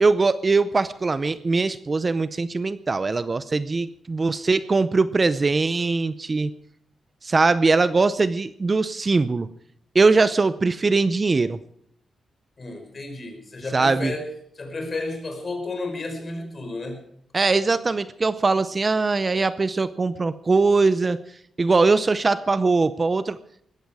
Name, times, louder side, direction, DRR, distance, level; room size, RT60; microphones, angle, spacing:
voice 1, 0.0-6.5 7.2-9.5 9.9-11.6 13.7-14.1 17.3-21.2 21.6-23.4, right 3 dB, 30° right, 14 dB, 0.6 m, -21 dB
voice 2, 12.6-14.3 14.5-17.0, left 2 dB, 35° left, 4 dB, 5.2 m, -32 dB
19.5 x 15.0 x 4.8 m, 0.65 s
wide cardioid pair, 115°, 0 cm